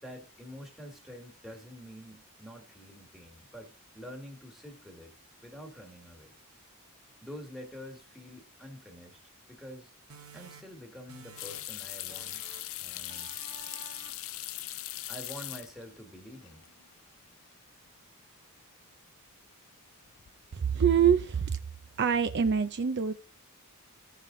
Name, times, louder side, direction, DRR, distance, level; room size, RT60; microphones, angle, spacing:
voice 1, 0.0-5.1 5.4-6.3 7.2-9.2 9.5-9.9 10.3-12.5 12.8-13.3 15.1-16.7, equal, ahead, 1.7 m, -47 dB
sound 1, 10.1-11.8 12.1-12.8 13.1-14.4, right 6 dB, 85° right, 1.1 m, -51 dB
sound 2, 11.4-16.0 16.3-16.9 17.3-17.4 20.1-20.5 20.8-21.3, left 15 dB, 65° left, 0.5 m, -40 dB
voice 2, 20.5-21.6 22.0-23.1, right 7 dB, 50° right, 0.5 m, -25 dB
14.0 x 4.9 x 3.8 m
head